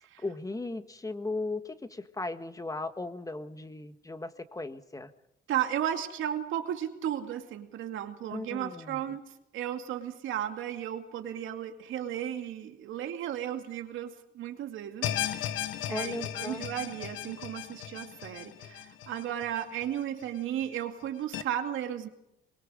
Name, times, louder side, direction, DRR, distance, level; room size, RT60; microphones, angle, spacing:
voice 1, 0.2-5.1 8.3-9.0 15.9-16.6, left 2 dB, 15° left, 10 dB, 1.6 m, -37 dB
voice 2, 5.5-9.2 9.5-22.1, right 10 dB, 85° right, 5 dB, 2.4 m, -35 dB
sound 1, 15.0-20.3 20.6-20.7 21.3-21.4, left 11 dB, 85° left, 1.2 m, -36 dB
23.0 x 22.0 x 5.1 m, 0.84 s
cardioid pair, 90°, 20 cm